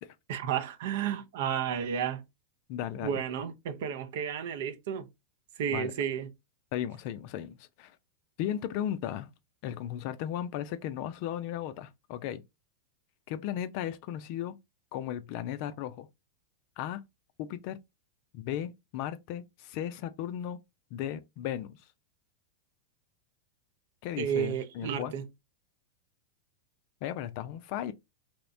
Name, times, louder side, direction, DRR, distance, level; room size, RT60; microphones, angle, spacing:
voice 1, 0.3-2.2 3.0-5.1 5.6-6.3 24.2-25.3, right 8 dB, 65° right, 0.5 m, -32 dB
voice 2, 2.7-3.2 5.7-5.9 6.7-7.9 8.4-9.3 9.6-12.4 13.3-14.6 14.9-16.1 16.8-17.0 17.4-17.8 18.3-20.6 20.9-21.8 24.0-25.1 27.0-27.9, left 11 dB, 55° left, 0.3 m, -36 dB
2.8 x 2.1 x 2.5 m
hypercardioid pair, 100°, 0 cm